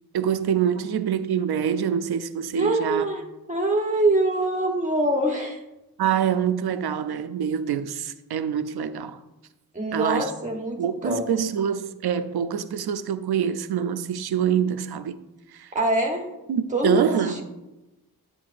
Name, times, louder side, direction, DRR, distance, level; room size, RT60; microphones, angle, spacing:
voice 1, 0.1-3.1 6.0-9.2 9.9-10.3 10.8-15.2 15.5-15.7 16.5-17.3, right 8 dB, 80° right, 0.5 m, -25 dB
voice 2, 2.5-5.6 9.7-11.2 15.7-16.3 16.7-17.4, right 1 dB, 20° right, 1.0 m, -24 dB
10.5 x 8.4 x 2.5 m
wide cardioid pair, 160°, 37 cm